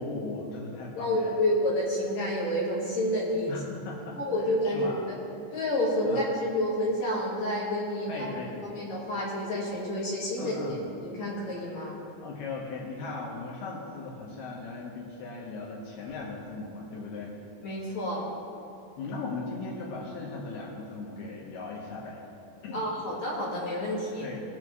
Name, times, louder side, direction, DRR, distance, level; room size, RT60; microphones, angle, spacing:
voice 1, 0.0-1.4 3.5-4.2 4.6-5.0 6.0-6.2 8.1-8.6 10.4-10.8 12.2-17.3 19.0-22.2 22.6-23.0 24.2-24.4, left 3 dB, 70° left, -3 dB, 2.9 m, -38 dB
voice 2, 1.0-3.5 4.1-5.2 5.5-8.2 8.6-10.6 11.0-12.0 17.6-18.2 22.7-24.3, left 1 dB, 50° left, -6 dB, 2.4 m, -29 dB
20.0 x 7.1 x 3.1 m, 2.7 s
omnidirectional pair, 5.2 m